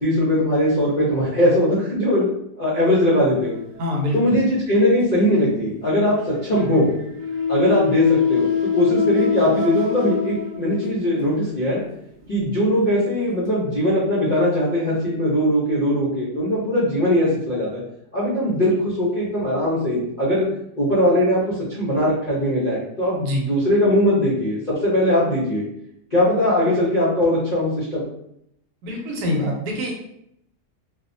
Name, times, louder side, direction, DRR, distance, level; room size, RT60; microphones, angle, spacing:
voice 1, 0.0-2.3 2.6-3.6 4.1-6.9 7.5-8.5 8.7-11.8 12.3-17.8 18.1-20.5 20.8-23.2 23.5-25.6 26.1-28.0, left 1 dB, 65° left, -8 dB, 0.4 m, -20 dB
sound 1, 3.4-4.4 6.4-11.5 12.2-12.4 13.2-13.3, left 6 dB, 40° right, 0.6 m, -24 dB
voice 2, 3.8-4.2 23.2-23.4 28.8-29.9, left 1 dB, 90° right, 0 dB, 1.2 m, -24 dB
2.7 x 2.0 x 2.5 m, 0.77 s
omnidirectional pair, 1.7 m